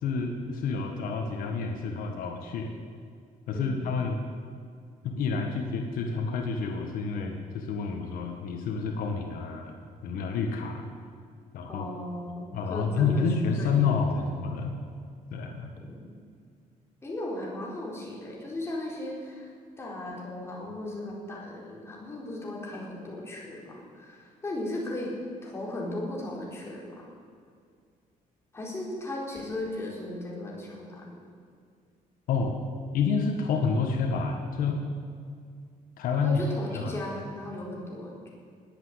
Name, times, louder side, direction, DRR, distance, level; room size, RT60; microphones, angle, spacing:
voice 1, 0.0-2.7 3.5-4.2 5.0-9.7 10.0-10.8 11.5-11.8 12.5-14.8 15.3-15.7 32.3-32.6 32.9-34.8 36.0-36.4 36.7-36.9, left 5 dB, 75° left, 3 dB, 1.7 m, -29 dB
voice 2, 11.7-14.3 15.8-16.1 17.0-25.1 25.4-27.1 28.5-31.2 36.2-38.3, left 1 dB, 20° left, -3 dB, 4.2 m, -37 dB
20.0 x 8.6 x 8.2 m, 2.2 s
cardioid pair, 145°, 15 cm